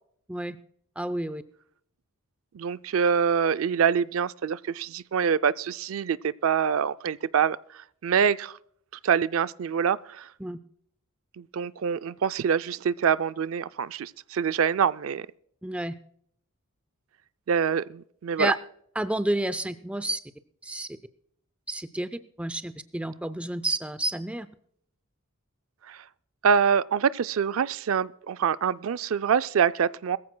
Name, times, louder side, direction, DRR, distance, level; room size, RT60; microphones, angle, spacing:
voice 1, 1.0-1.4 10.4-10.6 15.6-15.9 18.4-18.6 19.0-20.2 20.6-20.9 21.7-24.5, right 1 dB, 5° right, 0.5 m, -30 dB
voice 2, 2.5-8.6 9.0-10.3 11.4-15.3 17.5-18.5 25.9-26.0 26.4-30.2, right 7 dB, 70° right, 0.4 m, -25 dB
22.0 x 14.5 x 2.2 m
head